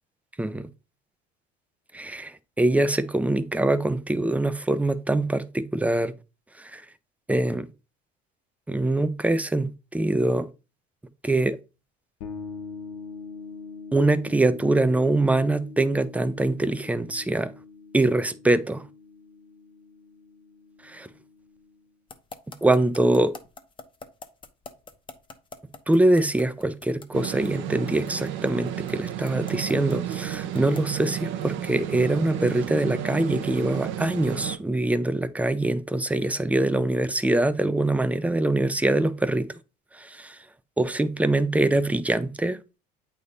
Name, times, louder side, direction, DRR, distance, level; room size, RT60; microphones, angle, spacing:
voice 1, 1.9-6.1 6.6-6.8 7.3-7.7 8.7-10.5 11.2-11.6 13.9-17.5 17.9-18.8 20.8-21.1 22.6-23.4 25.9-39.5 40.0-40.4 40.8-42.6, right 2 dB, 5° right, 0.5 m, -23 dB
sound 1, 12.2-21.8, left 5 dB, 85° left, 1.3 m, -43 dB
sound 2, 22.1-31.0, left 4 dB, 25° left, 0.9 m, -44 dB
sound 3, 27.1-34.6, right 11 dB, 65° right, 0.8 m, -32 dB
8.3 x 3.5 x 4.0 m
supercardioid pair, 105°, 21 cm